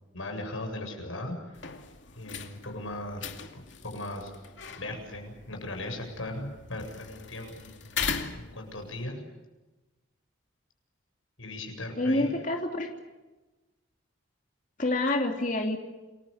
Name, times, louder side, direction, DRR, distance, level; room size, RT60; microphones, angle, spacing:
voice 1, 0.1-1.6 2.2-4.3 4.8-7.9 8.3-9.2 11.4-12.3, left 1 dB, 85° left, 4 dB, 7.6 m, -38 dB
sound 1, 1.5-9.0, left 6 dB, 65° left, 2.5 m, -39 dB
voice 2, 12.0-12.9 14.8-15.8, left 2 dB, 40° left, 2 dB, 3.0 m, -27 dB
29.5 x 21.5 x 6.7 m, 1.1 s
head